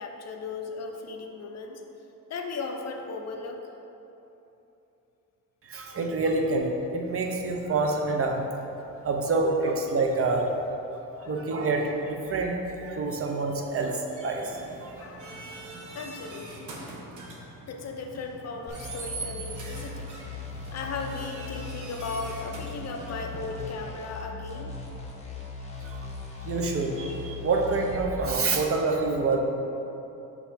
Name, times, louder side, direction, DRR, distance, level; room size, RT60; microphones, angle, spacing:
voice 1, 0.0-1.8 2.3-3.6 11.2-11.4 15.0-15.3 15.9-16.7 17.7-20.1 20.7-24.7, left 3 dB, 45° left, 3 dB, 0.6 m, -36 dB
voice 2, 5.6-8.5 9.0-10.5 11.2-14.9 25.8-26.1 26.4-29.4, right 3 dB, 40° right, 2 dB, 0.7 m, -27 dB
sound 1, 14.2-23.7, right 3 dB, 55° right, 1.1 m, -43 dB
sound 2, 18.7-28.1, left 4 dB, 20° left, 0.9 m, -39 dB
5.9 x 5.8 x 4.1 m, 3.0 s
wide cardioid pair, 165°, 35 cm